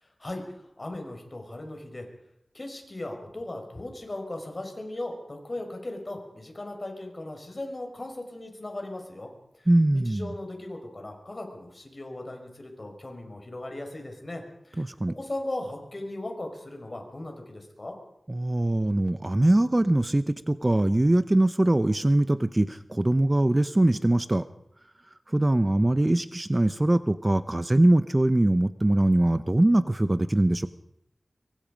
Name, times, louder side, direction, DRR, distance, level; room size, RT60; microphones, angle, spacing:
voice 1, 0.8-2.1 2.5-9.3 9.5-14.9 15.2-17.9, left 1 dB, 40° left, 3 dB, 5.6 m, -37 dB
voice 2, 9.7-10.3 14.8-15.1 18.3-24.4 25.3-30.7, right 1 dB, 25° right, 12 dB, 0.8 m, -22 dB
25.5 x 23.0 x 5.2 m, 0.76 s
wide cardioid pair, 80°, 0 cm